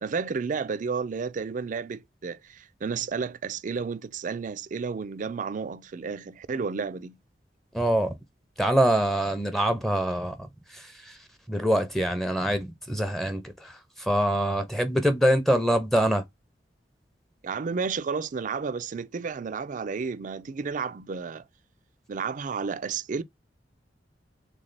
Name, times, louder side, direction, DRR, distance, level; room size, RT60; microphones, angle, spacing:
voice 1, 0.0-7.2 17.4-21.4 22.1-23.2, right 5 dB, 50° right, 0.4 m, -32 dB
voice 2, 7.7-8.1 8.6-10.3 11.5-13.7 14.1-16.2, right 1 dB, ahead, 0.6 m, -24 dB
3.6 x 3.2 x 3.9 m
head